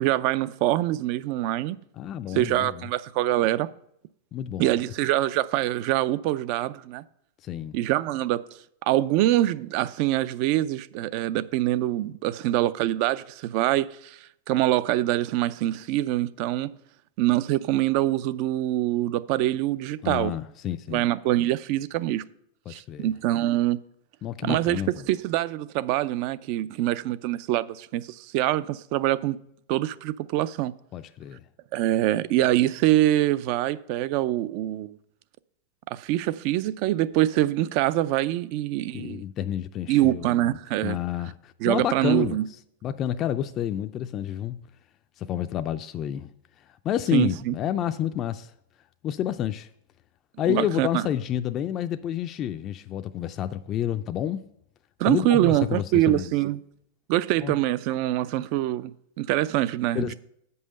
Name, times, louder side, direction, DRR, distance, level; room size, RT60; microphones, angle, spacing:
voice 1, 0.0-1.8 2.3-3.7 4.6-7.0 7.7-8.4 8.8-14.2 14.5-16.7 17.2-20.3 20.9-22.2 22.7-23.8 24.4-24.8 25.1-29.4 29.7-30.7 31.7-35.0 35.9-39.2 39.9-41.0 41.6-42.4 47.1-47.5 50.5-51.0 55.0-56.6 57.1-60.1, right 14 dB, 55° right, 0.4 m, -24 dB
voice 2, 2.0-2.8 4.3-4.7 7.4-7.8 20.0-21.1 22.7-23.1 24.2-25.0 30.9-31.4 38.9-40.6 40.8-42.4 42.8-44.6 45.2-46.3 46.7-48.5 49.0-49.7 50.4-54.4 55.1-56.3 57.4-57.6 59.9-60.1, left 10 dB, 35° left, 0.4 m, -29 dB
7.9 x 5.5 x 6.4 m
hypercardioid pair, 120°, 0 cm